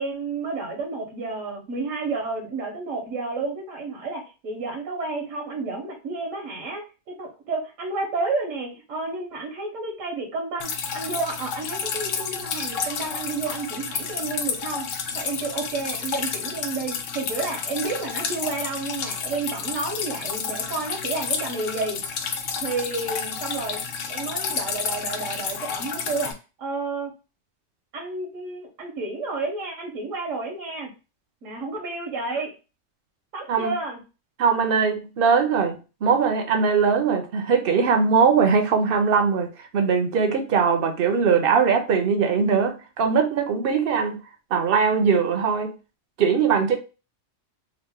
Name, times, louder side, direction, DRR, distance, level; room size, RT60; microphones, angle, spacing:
voice 1, 0.0-14.8 15.1-22.0 22.6-23.8 24.1-26.3 26.6-27.1 27.9-30.9 31.4-32.5 33.3-34.0, right 3 dB, 85° right, 1.2 m, -31 dB
Drip, 10.6-26.3, left 6 dB, 80° left, 0.9 m, -30 dB
voice 2, 34.4-44.2 44.5-45.7 46.2-46.8, right 6 dB, 60° right, 0.7 m, -21 dB
2.9 x 2.4 x 3.4 m
omnidirectional pair, 1.3 m